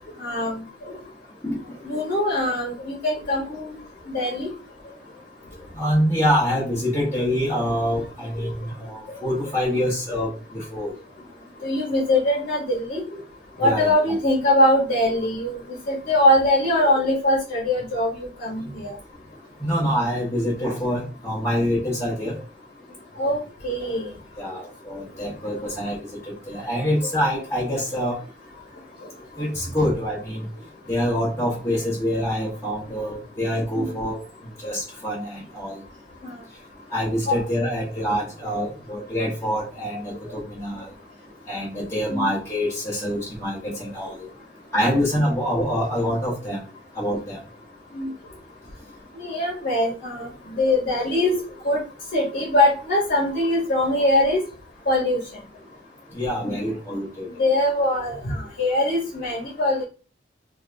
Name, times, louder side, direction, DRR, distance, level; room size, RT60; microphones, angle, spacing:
voice 1, 0.2-1.0 1.8-3.8 4.1-4.5 9.1-9.2 11.6-13.0 13.6-15.6 15.9-18.1 18.4-18.9 23.2-23.4 23.6-24.1 33.7-33.9 36.2-36.3 37.3-37.4 42.1-42.3 47.9-48.1 49.2-51.4 51.6-51.8 52.1-54.4 54.9-55.2 57.4-59.8, left 1 dB, 50° left, -4 dB, 1.0 m, -22 dB
voice 2, 5.8-10.9 13.6-14.2 19.6-22.3 24.4-26.0 26.3-28.2 29.4-30.5 30.9-34.2 34.6-35.8 36.9-40.9 41.5-44.1 44.7-46.6 47.0-47.4 56.1-57.3, equal, 15° left, -8 dB, 0.9 m, -25 dB
2.7 x 2.5 x 3.3 m, 0.34 s
head